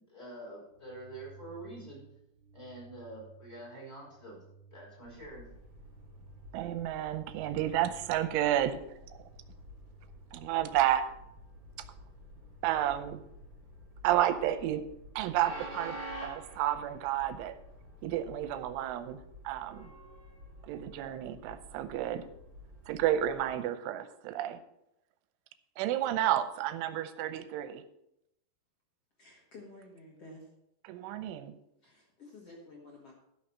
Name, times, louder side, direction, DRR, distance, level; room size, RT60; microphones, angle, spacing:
voice 1, 0.0-2.0 2.5-4.4 4.7-5.5, right 1 dB, 5° left, -4 dB, 3.8 m, -46 dB
sound 1, 0.7-13.7, right 5 dB, 65° right, 1.6 m, -58 dB
Train, 5.0-23.6, equal, 20° right, 3.5 m, -50 dB
voice 2, 6.5-8.8 10.3-11.1 12.6-13.2 14.0-14.8 15.2-17.6 18.0-19.9 20.7-22.3 22.9-24.6 25.8-27.8 30.9-31.6, right 12 dB, 80° right, 11 dB, 3.0 m, -31 dB
voice 3, 29.2-30.5 31.8-33.1, left 2 dB, 85° left, -3 dB, 1.3 m, -51 dB
12.5 x 6.5 x 6.0 m, 0.81 s
omnidirectional pair, 5.8 m